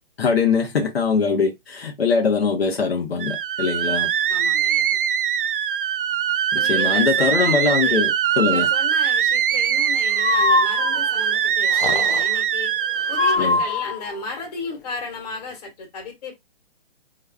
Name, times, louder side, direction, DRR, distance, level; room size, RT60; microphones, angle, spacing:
voice 1, 0.2-4.1 6.5-8.7 13.4-13.6, left 5 dB, 80° left, 1.1 m, -22 dB
sound 1, 3.2-13.4, right 9 dB, 60° right, 0.4 m, -22 dB
voice 2, 4.3-5.0 6.5-8.1 8.5-12.7 13.1-16.4, left 4 dB, 40° left, 1.6 m, -34 dB
Breathing, 10.1-11.2 11.7-12.4 13.1-14.2, left 3 dB, 60° left, 0.8 m, -23 dB
3.7 x 3.1 x 2.3 m
hypercardioid pair, 150°, 30 cm